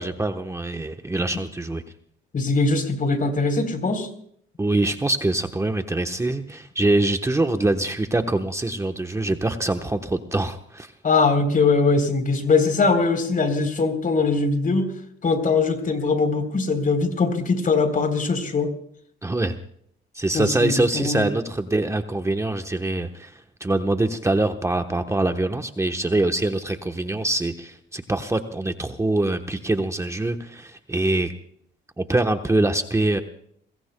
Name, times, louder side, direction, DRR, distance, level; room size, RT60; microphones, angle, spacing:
voice 1, 0.0-1.8 4.6-10.9 19.2-19.6 20.1-31.3 32.0-33.2, right 2 dB, 15° right, 6 dB, 1.1 m, -24 dB
voice 2, 2.3-4.1 11.0-14.9 15.2-18.7 20.3-21.3, left 4 dB, 45° left, 7 dB, 3.7 m, -21 dB
26.5 x 22.0 x 2.3 m, 0.67 s
cardioid pair, 90°, 20 cm